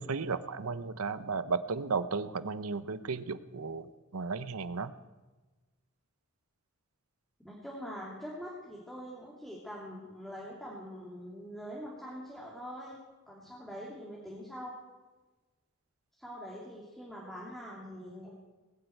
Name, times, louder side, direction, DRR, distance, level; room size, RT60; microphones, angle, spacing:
voice 1, 0.0-4.9, right 4 dB, 85° right, 13 dB, 0.8 m, -34 dB
voice 2, 7.4-13.0 13.3-14.8 16.2-18.3, equal, ahead, -5 dB, 2.6 m, -44 dB
20.0 x 7.9 x 9.2 m, 1.2 s
head